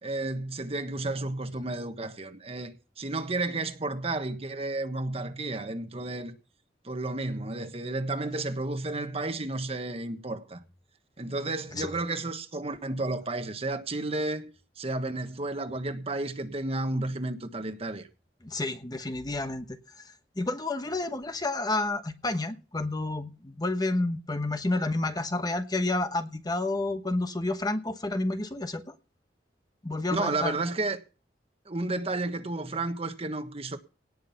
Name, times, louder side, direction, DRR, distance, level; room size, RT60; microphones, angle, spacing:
voice 1, 0.0-6.3 6.8-10.6 11.2-18.1 30.1-31.0 31.6-33.8, right 2 dB, 35° right, 1.3 m, -32 dB
voice 2, 18.4-28.8 29.8-30.5, left 2 dB, 25° left, 1.0 m, -30 dB
18.0 x 6.4 x 5.8 m
head